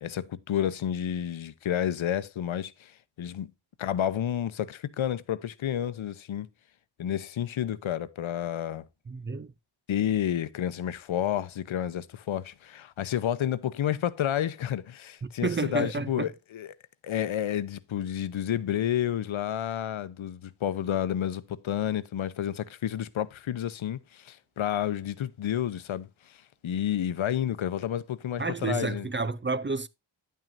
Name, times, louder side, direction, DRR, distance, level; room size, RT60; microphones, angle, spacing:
voice 1, 0.0-2.9 3.2-3.5 3.8-6.5 7.0-8.8 9.9-16.7 17.0-26.4 26.6-29.1, left 10 dB, 80° left, 0.9 m, -30 dB
voice 2, 9.1-9.5 15.2-16.3 28.4-29.9, right 4 dB, 25° right, 0.5 m, -30 dB
10.5 x 9.0 x 2.6 m
wide cardioid pair, 170°, 47 cm